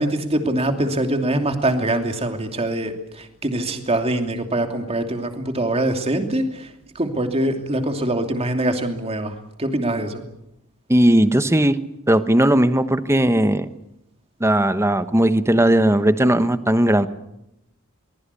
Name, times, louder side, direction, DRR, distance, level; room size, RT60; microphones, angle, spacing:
voice 1, 0.0-6.7 6.9-10.2, right 1 dB, 25° right, 5 dB, 2.8 m, -23 dB
voice 2, 10.9-11.8 12.1-13.7 14.4-17.1, right 1 dB, 10° right, 11 dB, 1.1 m, -17 dB
23.5 x 21.0 x 8.4 m, 0.84 s
head